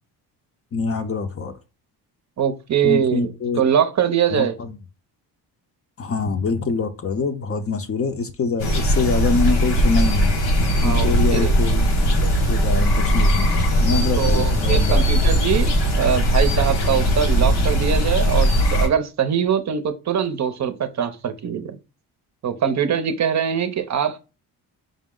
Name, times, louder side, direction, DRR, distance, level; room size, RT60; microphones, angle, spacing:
voice 1, 0.7-1.5 2.8-3.6 4.3-4.8 6.0-10.4 10.8-11.8 12.2-15.0, left 4 dB, 35° left, 0.6 m, -25 dB
voice 2, 2.4-3.3 3.6-4.5 10.8-11.5 14.2-21.8 22.4-24.2, right 8 dB, 45° right, 0.6 m, -22 dB
sound 1, 8.6-18.9, equal, 90° left, 1.5 m, -19 dB
5.1 x 2.0 x 3.7 m
cardioid pair, 110°, 40 cm